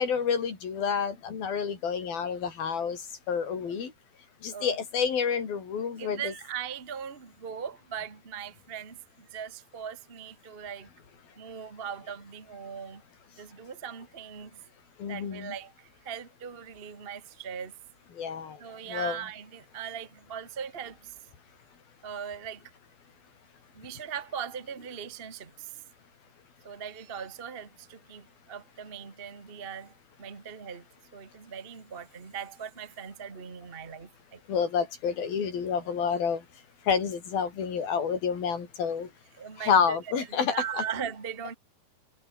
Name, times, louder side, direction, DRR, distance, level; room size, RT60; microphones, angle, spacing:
voice 1, 0.0-3.0 3.3-3.9 4.4-6.3 15.0-15.5 18.2-18.6 18.9-19.2 34.5-36.4 36.9-39.1 39.6-40.8, left 6 dB, 65° left, 5.8 m, -29 dB
voice 2, 6.0-10.9 11.4-13.0 13.4-14.6 15.1-17.7 18.6-21.1 22.0-22.6 23.7-25.8 26.6-29.9 30.2-30.8 31.1-34.4 39.4-40.0 40.5-41.5, right 7 dB, 50° right, 0.6 m, -39 dB
omnidirectional pair, 4.6 m